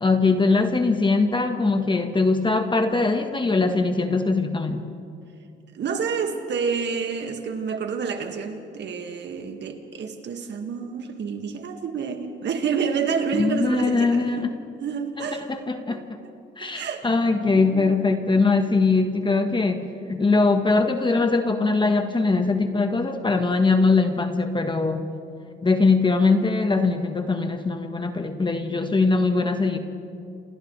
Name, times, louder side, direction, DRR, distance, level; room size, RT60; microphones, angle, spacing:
voice 1, 0.0-4.8 13.3-14.5 15.2-16.2 16.6-25.1 25.6-29.8, left 3 dB, 25° left, 6 dB, 1.3 m, -21 dB
voice 2, 5.7-14.4 14.8-15.5 15.9-16.0 16.6-17.1 17.5-17.9, right 6 dB, 60° right, 5 dB, 1.9 m, -29 dB
28.5 x 27.5 x 3.3 m, 2.5 s
cardioid pair, 90°, 20 cm